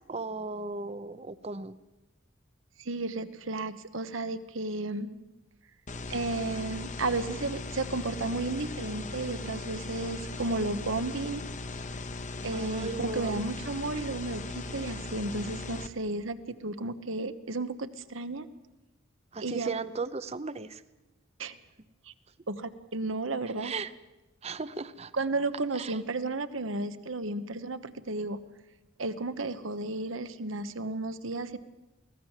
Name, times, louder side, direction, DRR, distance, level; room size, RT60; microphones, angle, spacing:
voice 1, 0.1-1.8 12.5-13.4 19.3-20.8 23.6-23.9 24.4-25.1 25.7-26.0, right 3 dB, 30° right, 14 dB, 0.7 m, -36 dB
voice 2, 2.8-5.1 6.1-11.4 12.4-18.5 19.4-19.7 21.4-21.5 22.1-22.2 22.5-23.7 25.1-28.4 29.0-31.6, right 2 dB, 75° right, 11 dB, 1.2 m, -33 dB
sound 1, 5.9-15.9, left 3 dB, 35° left, 0.9 m, -38 dB
23.5 x 17.5 x 7.4 m, 1.0 s
head